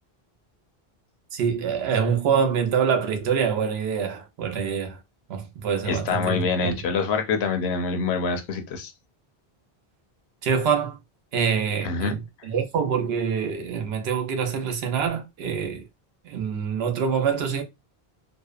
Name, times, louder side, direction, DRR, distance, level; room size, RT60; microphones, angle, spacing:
voice 1, 1.3-5.0 5.3-6.7 10.4-11.0 11.3-15.8 16.2-17.6, right 6 dB, 80° right, 0.8 m, -25 dB
voice 2, 5.8-8.9 11.8-12.1, left 4 dB, 80° left, 0.9 m, -25 dB
2.7 x 2.0 x 2.3 m
omnidirectional pair, 1.1 m